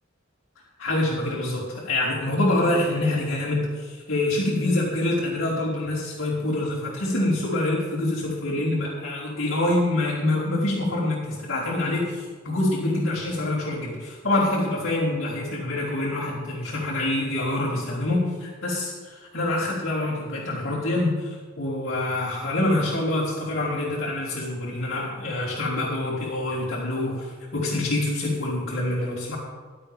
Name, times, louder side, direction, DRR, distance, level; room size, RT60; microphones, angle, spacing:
voice 1, 0.8-29.4, left 1 dB, 65° left, -10 dB, 3.7 m, -26 dB
16.5 x 12.0 x 3.6 m, 1.5 s
head